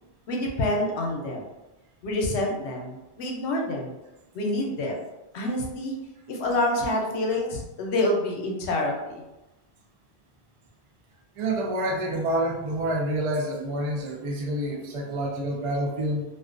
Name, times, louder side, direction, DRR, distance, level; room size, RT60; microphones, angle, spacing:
voice 1, 0.3-1.4 2.0-3.9 4.3-5.0 5.3-6.0 6.3-9.2, left 1 dB, 85° left, 0 dB, 0.9 m, -27 dB
voice 2, 11.4-16.2, right 1 dB, 60° right, -1 dB, 0.3 m, -28 dB
2.3 x 2.2 x 2.4 m, 1.0 s
omnidirectional pair, 1.1 m